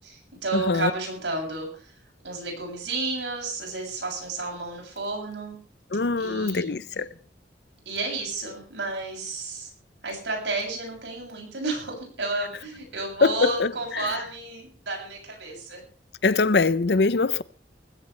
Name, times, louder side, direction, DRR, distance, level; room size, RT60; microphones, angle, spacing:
voice 1, 0.0-1.7 2.2-5.6 6.2-6.8 7.9-9.7 10.0-15.8, right 3 dB, 90° right, 7.5 m, -32 dB
voice 2, 0.5-0.9 5.9-7.1 13.2-14.1 16.2-17.4, left 3 dB, 65° left, 0.7 m, -23 dB
19.5 x 16.0 x 3.3 m
head